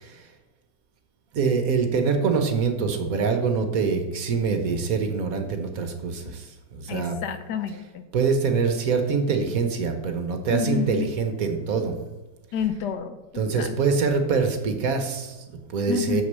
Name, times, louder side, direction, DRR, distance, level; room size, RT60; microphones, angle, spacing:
voice 1, 1.3-7.2 8.1-12.0 13.3-16.2, right 5 dB, 55° right, 6 dB, 1.2 m, -25 dB
voice 2, 6.9-8.0 10.5-11.1 12.5-13.2 13.6-13.8 15.9-16.2, left 7 dB, 70° left, 10 dB, 1.2 m, -29 dB
6.5 x 6.2 x 6.6 m, 1.1 s
omnidirectional pair, 2.0 m